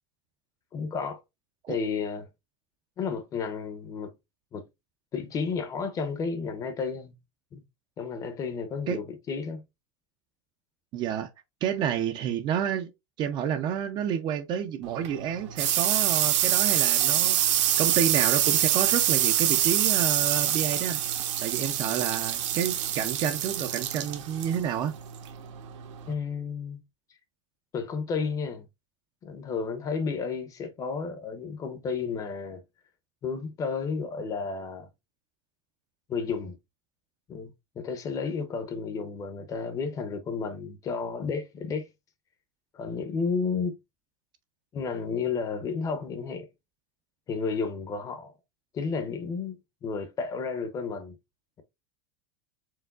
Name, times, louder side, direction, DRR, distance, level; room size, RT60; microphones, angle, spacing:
voice 1, 0.7-1.2 1.7-2.3 3.0-4.1 4.5-4.6 5.1-7.2 7.5-7.6 8.0-9.6 26.1-26.8 27.7-28.7 29.2-32.6 33.2-34.9 36.1-36.6 37.3-41.9 42.7-43.7 44.7-46.5 47.3-48.3 48.7-51.2, left 5 dB, 20° left, 0.6 m, -32 dB
voice 2, 10.9-11.3 11.6-12.9 13.2-17.4 17.8-21.0 21.4-24.9, right 9 dB, 30° right, 0.4 m, -29 dB
sound 1, 14.8-26.1, right 11 dB, 75° right, 1.0 m, -25 dB
4.5 x 3.5 x 2.3 m
supercardioid pair, 155°, 15 cm